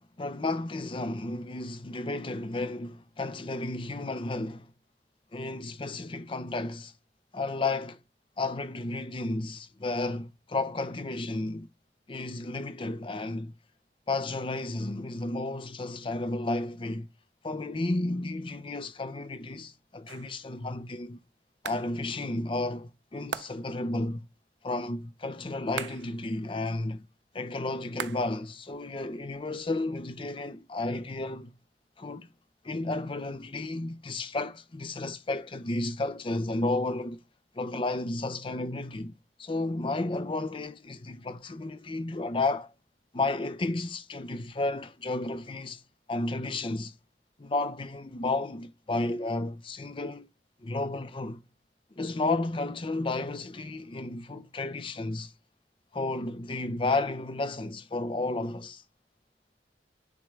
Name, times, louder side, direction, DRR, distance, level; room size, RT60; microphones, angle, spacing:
voice 1, 0.2-4.7 5.3-6.9 7.3-8.0 8.4-11.7 12.1-13.5 14.1-17.1 17.4-21.2 21.6-24.3 24.6-27.0 27.3-31.5 32.0-32.3 32.6-37.2 37.5-39.1 39.4-42.7 43.1-45.8 46.1-46.9 47.4-50.3 50.6-51.4 52.0-55.3 55.9-58.8, left 2 dB, 30° left, 0.5 m, -32 dB
sound 1, 20.1-20.5 21.6-22.0 23.3-23.8 25.8-26.2 28.0-28.5 28.7-29.7, right 8 dB, 90° right, 0.4 m, -40 dB
9.4 x 3.7 x 3.1 m
head